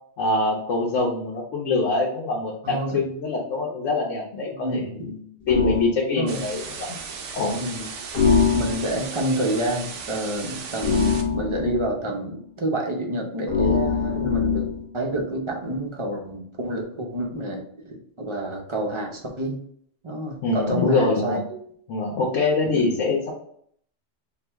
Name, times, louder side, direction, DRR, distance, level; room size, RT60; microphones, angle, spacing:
voice 1, 0.2-7.0 7.3-7.6 20.4-21.4 21.9-23.3, left 3 dB, 85° left, -3 dB, 1.1 m, -24 dB
voice 2, 2.6-3.0 4.5-5.1 6.2-6.4 7.6-7.9 8.5-14.7 14.9-19.6 20.0-21.6 22.6-22.9, right 1 dB, 35° right, 1 dB, 0.6 m, -28 dB
sound 1, 5.5-5.9 8.1-9.1 10.8-11.9 13.5-14.8, left 5 dB, 35° left, 0.8 m, -22 dB
sound 2, 6.3-11.2, right 5 dB, 80° right, 1.0 m, -36 dB
4.5 x 2.2 x 3.4 m, 0.64 s
omnidirectional pair, 1.2 m